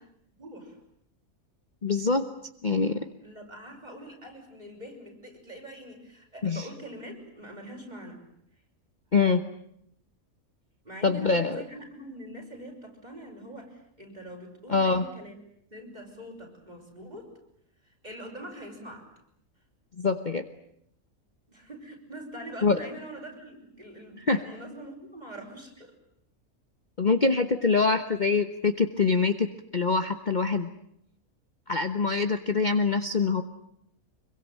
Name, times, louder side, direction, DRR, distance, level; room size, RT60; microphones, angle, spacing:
voice 1, 0.4-0.8 3.2-8.2 10.8-15.4 15.7-17.3 17.8-19.1 21.5-25.9, right 1 dB, 30° right, 1 dB, 6.6 m, -43 dB
voice 2, 1.8-2.2 2.6-3.0 6.4-6.7 9.1-9.4 11.0-11.6 14.7-15.1 20.0-20.4 22.6-22.8 24.2-24.4 27.0-29.5 29.7-30.7 31.7-33.4, left 4 dB, 35° left, 8 dB, 1.2 m, -24 dB
26.0 x 23.0 x 9.2 m, 0.73 s
omnidirectional pair, 1.5 m